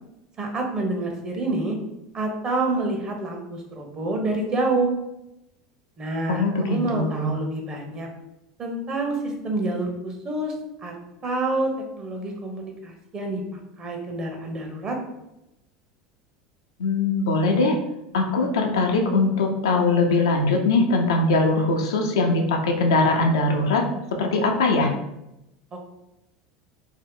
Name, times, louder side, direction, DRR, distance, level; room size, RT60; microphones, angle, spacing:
voice 1, 0.4-1.8 2.1-4.9 6.0-8.1 8.6-10.5 10.8-10.9 11.2-11.7 12.0-13.4 13.8-15.0, right 2 dB, 35° right, 1 dB, 0.8 m, -27 dB
voice 2, 6.3-7.4 16.8-17.8 18.1-23.8 24.2-24.9, left 3 dB, 80° left, 2 dB, 0.5 m, -21 dB
2.8 x 2.1 x 3.6 m, 0.88 s
hypercardioid pair, 85°, 2 cm